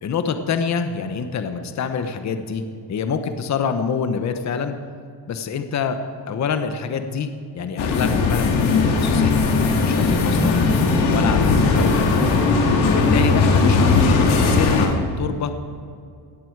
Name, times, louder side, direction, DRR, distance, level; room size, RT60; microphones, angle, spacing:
voice 1, 0.0-2.6 2.9-4.7 5.3-6.0 6.2-7.3 7.5-10.7 11.1-12.3 12.8-15.6, left 6 dB, 35° left, 8 dB, 1.0 m, -26 dB
sound 1, 7.8-14.9, left 4 dB, 75° left, 2.6 m, -18 dB
19.0 x 14.0 x 4.7 m, 2.3 s
cardioid pair, 155°, 47 cm